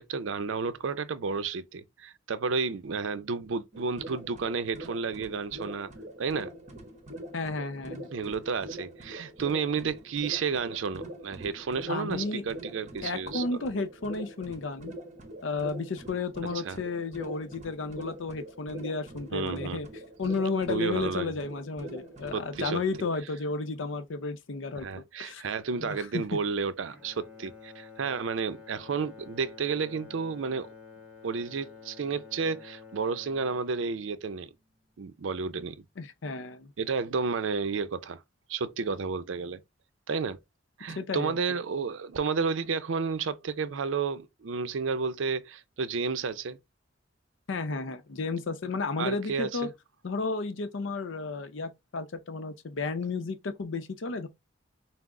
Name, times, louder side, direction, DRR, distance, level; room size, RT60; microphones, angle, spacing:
voice 1, 0.0-5.9 6.2-6.5 8.1-13.6 16.4-16.8 19.3-19.8 20.7-21.3 22.3-22.8 24.8-30.7 31.2-34.5 35.0-35.8 36.8-38.2 38.5-39.6 40.1-40.4 40.8-46.6 49.0-49.7, right 5 dB, 85° right, 0.5 m, -31 dB
sound 1, 3.7-23.2, right 1 dB, 40° right, 1.2 m, -44 dB
voice 2, 7.3-8.1 11.9-12.4 13.0-14.9 15.4-19.9 20.2-25.4 25.8-26.2 36.0-36.7 41.0-41.4 47.5-49.7 50.0-54.3, left 4 dB, 80° left, 0.6 m, -33 dB
Bowed string instrument, 26.9-35.1, left 5 dB, 10° right, 1.5 m, -50 dB
5.9 x 2.0 x 3.6 m
head